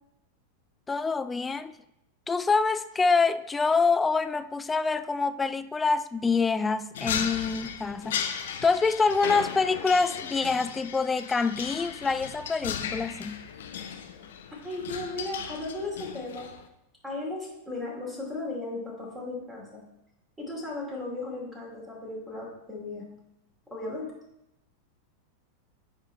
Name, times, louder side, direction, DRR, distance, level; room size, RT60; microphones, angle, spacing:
voice 1, 0.9-1.7 2.3-8.2 8.6-13.4, left 4 dB, 15° left, 12 dB, 0.3 m, -26 dB
sound 1, 6.9-16.7, left 8 dB, 60° left, 0.6 m, -36 dB
voice 2, 14.6-16.5 17.0-19.8 20.4-23.2 23.7-24.1, left 2 dB, 10° right, -3 dB, 2.5 m, -36 dB
9.4 x 3.7 x 4.3 m, 0.86 s
figure-of-eight pair, 90°, 0 cm